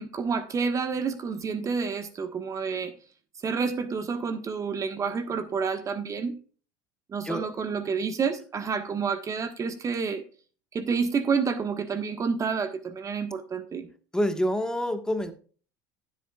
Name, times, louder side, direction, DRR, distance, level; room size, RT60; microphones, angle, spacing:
voice 1, 0.0-2.9 3.4-6.3 7.1-10.2 10.7-13.9, right 5 dB, 30° right, 8 dB, 1.4 m, -29 dB
voice 2, 14.1-15.3, equal, 5° left, 7 dB, 1.5 m, -27 dB
15.0 x 7.8 x 2.4 m, 0.39 s
hypercardioid pair, 90°, 10 cm